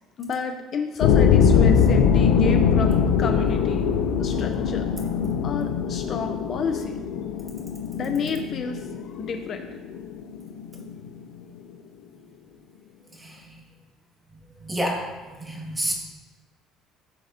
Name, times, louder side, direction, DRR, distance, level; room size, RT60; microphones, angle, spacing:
voice 1, 0.2-3.8 4.2-4.9 5.4-7.0 7.9-9.7, left 5 dB, 40° left, 5 dB, 0.7 m, -30 dB
sound 1, 1.0-11.1, left 7 dB, 90° left, 0.7 m, -22 dB
voice 2, 13.2-13.5 14.6-15.0 15.4-15.9, equal, 15° right, -2 dB, 2.1 m, -29 dB
15.5 x 7.0 x 2.9 m, 1.3 s
cardioid pair, 145°, 0 cm